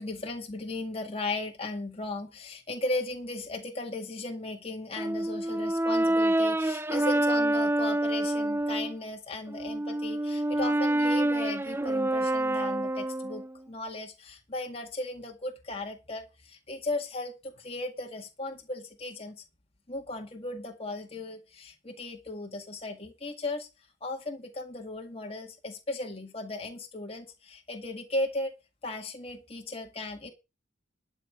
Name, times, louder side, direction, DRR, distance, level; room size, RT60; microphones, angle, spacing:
voice 1, 0.0-19.4 19.9-23.7 24.0-28.5 28.8-30.3, left 2 dB, 30° left, 2.0 m, -36 dB
Brass instrument, 5.0-8.9 9.5-13.6, right 1 dB, 10° right, 0.5 m, -27 dB
11.5 x 5.7 x 7.7 m
head